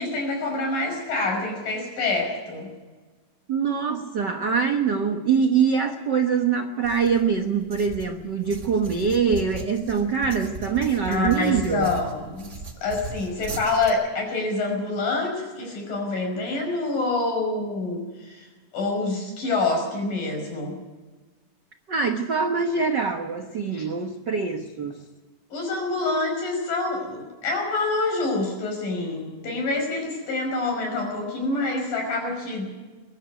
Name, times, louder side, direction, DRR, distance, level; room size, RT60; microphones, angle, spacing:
voice 1, 0.0-2.7 11.1-12.5 12.8-18.5 18.7-20.8 23.7-23.9 25.5-32.8, left 3 dB, 85° left, 2 dB, 7.4 m, -26 dB
voice 2, 3.5-11.9 21.9-25.0, right 6 dB, 70° right, 5 dB, 1.0 m, -24 dB
sound 1, 6.8-13.9, right 3 dB, 35° right, 1.3 m, -38 dB
22.0 x 13.5 x 9.4 m, 1.3 s
omnidirectional pair, 3.8 m